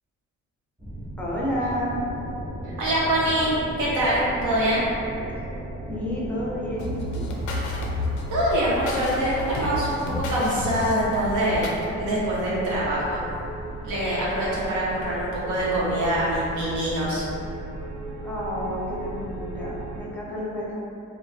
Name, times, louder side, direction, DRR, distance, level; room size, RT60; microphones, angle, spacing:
sound 1, 0.8-20.0, right 1 dB, 15° right, 0.9 m, -36 dB
voice 1, 1.2-2.0 5.9-7.2 18.2-20.7, left 1 dB, 5° left, -7 dB, 0.6 m, -30 dB
voice 2, 2.8-3.5 3.8-4.9 8.3-13.2 13.8-17.2, right 1 dB, 80° right, -7 dB, 0.8 m, -24 dB
sound 2, 6.8-11.9, left 1 dB, 80° left, 0.4 m, -31 dB
2.2 x 2.2 x 2.6 m, 2.7 s
cardioid pair, 90°, 30 cm